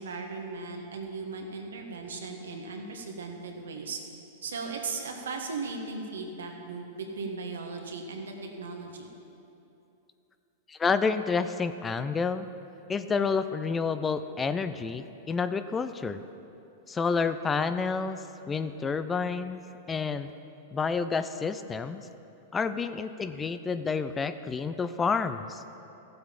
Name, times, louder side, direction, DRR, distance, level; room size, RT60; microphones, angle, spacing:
voice 1, 0.0-4.0 4.4-9.1, right 4 dB, 85° right, 2 dB, 1.5 m, -37 dB
voice 2, 10.7-12.5 12.9-16.2 16.9-18.2 18.5-19.6 19.9-20.3 20.7-22.1 22.5-25.6, left 5 dB, 20° left, 11 dB, 0.4 m, -29 dB
14.5 x 7.8 x 5.2 m, 2.8 s
hypercardioid pair, 120°, 0 cm